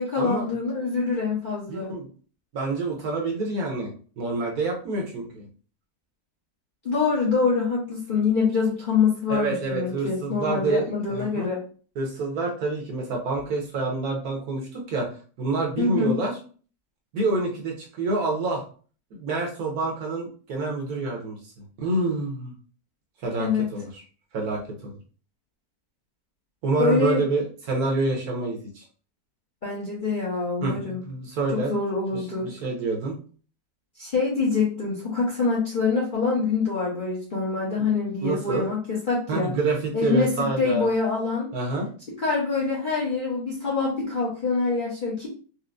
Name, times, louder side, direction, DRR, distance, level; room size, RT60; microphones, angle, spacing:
voice 1, 0.0-1.9 6.8-11.6 15.8-16.1 23.4-23.7 26.8-27.2 29.6-31.0 31.5-32.5 34.0-39.5 39.9-40.3 40.6-41.5 42.2-45.3, left 4 dB, 40° left, -5 dB, 0.7 m, -25 dB
voice 2, 1.7-2.1 2.5-5.5 9.3-11.5 12.0-16.3 17.1-18.6 19.1-21.4 21.8-22.5 23.2-24.0 24.3-24.9 26.6-28.8 30.6-31.7 32.4-33.2 38.2-38.6 39.3-40.9 41.5-41.9, right 3 dB, 65° right, 0 dB, 1.2 m, -27 dB
4.2 x 2.1 x 2.5 m, 0.40 s
omnidirectional pair, 1.9 m